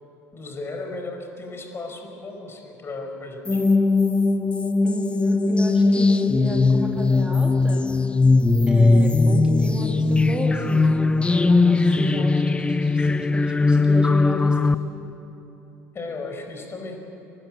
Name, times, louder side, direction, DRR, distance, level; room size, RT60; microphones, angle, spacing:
voice 1, 0.3-3.6 15.9-17.0, left 3 dB, 30° left, 4 dB, 5.1 m, -35 dB
sound 1, 3.5-14.7, left 3 dB, 15° left, 0.9 m, -19 dB
voice 2, 4.8-7.9 8.7-12.4 12.7-14.6, equal, 10° right, 1 dB, 2.6 m, -32 dB
24.0 x 19.5 x 9.2 m, 2.9 s
figure-of-eight pair, 65°, 8 cm